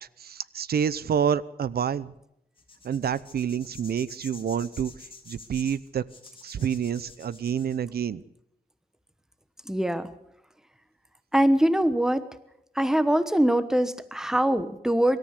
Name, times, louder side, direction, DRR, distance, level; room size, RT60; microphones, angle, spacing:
voice 1, 0.2-2.1 2.8-4.9 5.3-6.0 6.4-8.2, right 8 dB, 85° right, 18 dB, 0.7 m, -28 dB
sound 1, 2.6-7.8, left 4 dB, 35° left, 3.3 m, -48 dB
voice 2, 9.7-10.1 11.3-12.3 12.7-15.2, right 1 dB, 5° right, 12 dB, 1.1 m, -23 dB
24.0 x 13.5 x 8.2 m, 0.82 s
wide cardioid pair, 155°, 16 cm